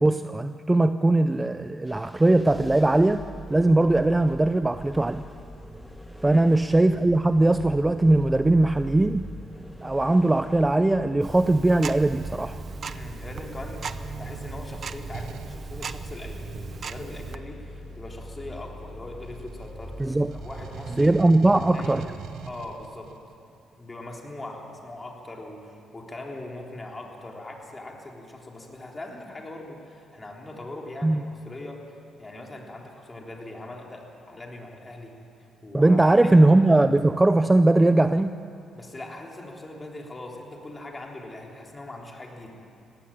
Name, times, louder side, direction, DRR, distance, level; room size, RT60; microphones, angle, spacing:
voice 1, 0.0-3.2 3.5-5.2 6.2-9.3 9.8-12.6 20.0-20.3 21.0-22.1 31.0-31.2 35.7-38.3, right 2 dB, 15° right, 11 dB, 0.5 m, -20 dB
sound 1, 1.9-21.2, equal, 5° left, 1.6 m, -42 dB
Tick-tock, 11.2-17.4, right 5 dB, 50° right, 0.8 m, -38 dB
voice 2, 12.9-21.1 21.6-22.1 22.5-23.1 23.8-31.9 32.2-35.1 35.6-36.2 38.7-42.6, left 2 dB, 20° left, 0 dB, 3.7 m, -41 dB
sound 2, 15.1-15.6 16.9-18.8 19.2-23.4, right 8 dB, 75° right, 0.8 m, -42 dB
17.5 x 16.0 x 10.0 m, 2.6 s
cardioid pair, 90°, 0 cm